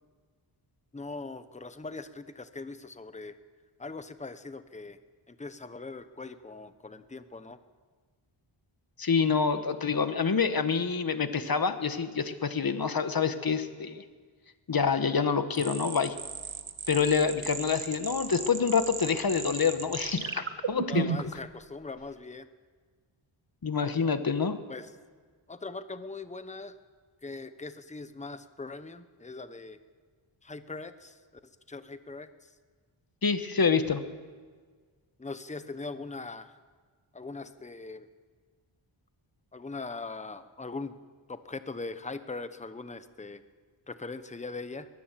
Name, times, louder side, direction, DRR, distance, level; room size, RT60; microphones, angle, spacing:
voice 1, 0.9-3.4 3.8-5.0 5.3-7.6 20.9-22.5 24.7-24.9 25.5-26.8 27.2-29.8 30.4-31.2 31.7-32.5 35.2-36.6 37.1-38.1 39.5-41.0 41.3-43.4 43.9-44.9, left 3 dB, 15° left, 11 dB, 0.9 m, -41 dB
voice 2, 9.0-14.0 14.7-16.2 16.9-21.1 23.6-24.6 33.2-34.0, left 5 dB, 45° left, 10 dB, 1.3 m, -27 dB
sound 1, 15.5-21.4, right 6 dB, 65° right, 1.5 m, -35 dB
22.0 x 16.0 x 7.5 m, 1.5 s
wide cardioid pair, 110°, 50 cm